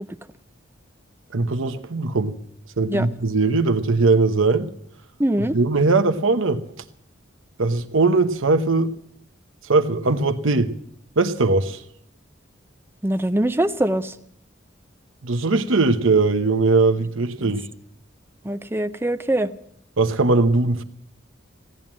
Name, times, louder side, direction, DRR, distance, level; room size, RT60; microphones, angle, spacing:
voice 1, 1.3-2.4 2.8-4.7 5.4-6.6 7.6-8.9 9.6-10.7 11.2-11.8 15.2-17.7 20.0-20.8, right 3 dB, 85° right, 1.0 m, -20 dB
voice 2, 5.2-5.6 13.0-14.1 17.4-17.5 18.4-19.5, right 1 dB, 10° right, 0.5 m, -22 dB
16.5 x 11.0 x 7.4 m
head